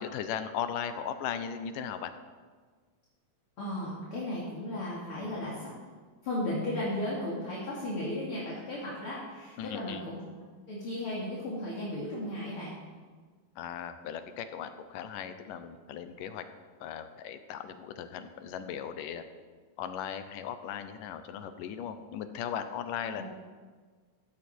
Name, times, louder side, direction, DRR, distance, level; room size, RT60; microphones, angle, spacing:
voice 1, 0.0-2.1 9.6-10.0 13.6-16.4 16.8-19.2 19.8-23.2, left 8 dB, 80° left, 9 dB, 2.5 m, -37 dB
voice 2, 3.6-5.7 6.2-10.2 10.7-12.7 23.2-23.3, left 1 dB, 45° left, -6 dB, 3.1 m, -35 dB
15.0 x 14.5 x 4.5 m, 1.5 s
omnidirectional pair, 3.8 m